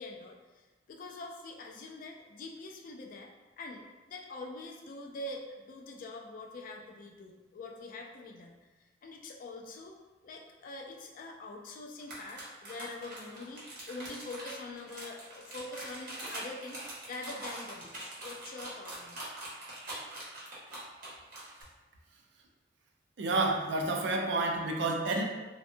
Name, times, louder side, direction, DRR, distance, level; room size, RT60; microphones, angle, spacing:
voice 1, 0.0-3.3 3.6-8.6 9.0-10.0 10.2-19.2, left 2 dB, 50° left, 2 dB, 0.3 m, -44 dB
sound 1, 12.0-21.6, right 1 dB, 50° right, 0.8 m, -43 dB
voice 2, 23.2-25.2, right 2 dB, 65° right, 1 dB, 0.4 m, -29 dB
2.6 x 2.2 x 2.5 m, 1.2 s
head